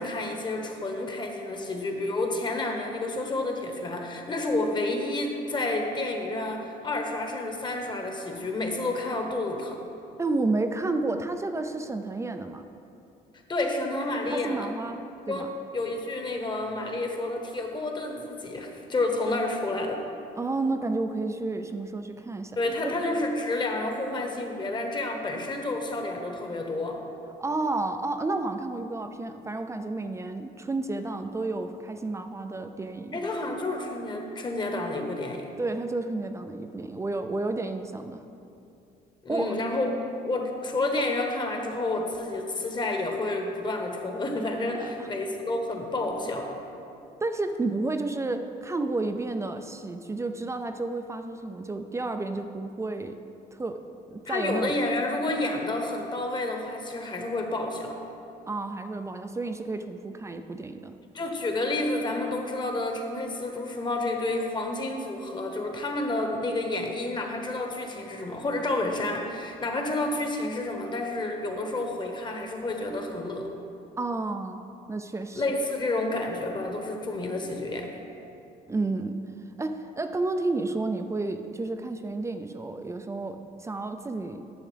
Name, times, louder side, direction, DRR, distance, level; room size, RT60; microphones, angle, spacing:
voice 1, 0.0-9.8 13.5-14.7 15.3-15.5 15.7-20.0 22.6-27.0 33.1-35.5 39.2-39.9 40.2-46.5 54.3-58.0 61.1-73.5 75.3-77.9, left 2 dB, 25° left, 3 dB, 1.1 m, -30 dB
voice 2, 10.2-12.7 14.3-15.5 20.3-22.9 27.4-33.2 35.6-38.2 39.3-39.6 44.7-45.1 47.2-53.2 53.5-53.8 54.1-54.7 58.5-61.0 74.0-75.4 78.7-79.2 79.6-84.4, right 2 dB, 15° right, 7 dB, 0.4 m, -31 dB
11.0 x 7.2 x 3.4 m, 2.7 s
cardioid pair, 110°, 17 cm